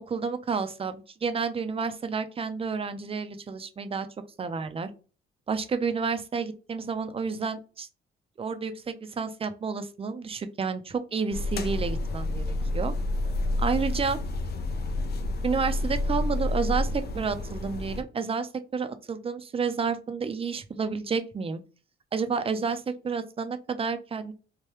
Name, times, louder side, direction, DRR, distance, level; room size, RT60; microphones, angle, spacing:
voice 1, 0.1-4.1 4.4-4.9 5.5-7.9 8.4-12.9 13.6-14.2 15.4-21.6 22.1-24.3, right 5 dB, 30° right, 9 dB, 0.5 m, -30 dB
sound 1, 11.3-18.0, left 2 dB, 55° left, 0.5 m, -29 dB
3.2 x 2.2 x 3.0 m, 0.36 s
cardioid pair, 90°, 20 cm